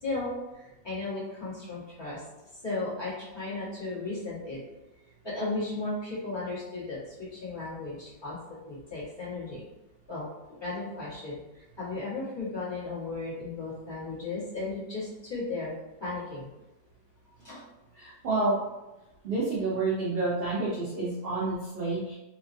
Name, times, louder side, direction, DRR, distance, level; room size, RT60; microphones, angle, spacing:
voice 1, 0.0-2.2 2.6-4.6 5.2-8.4 8.7-9.6 10.1-15.7 16.0-16.5 17.4-17.6, left 3 dB, 20° left, -10 dB, 1.1 m, -35 dB
voice 2, 18.0-18.6 19.2-22.2, right 3 dB, 75° right, -7 dB, 0.5 m, -29 dB
3.1 x 2.3 x 2.5 m, 1.0 s
omnidirectional pair, 1.7 m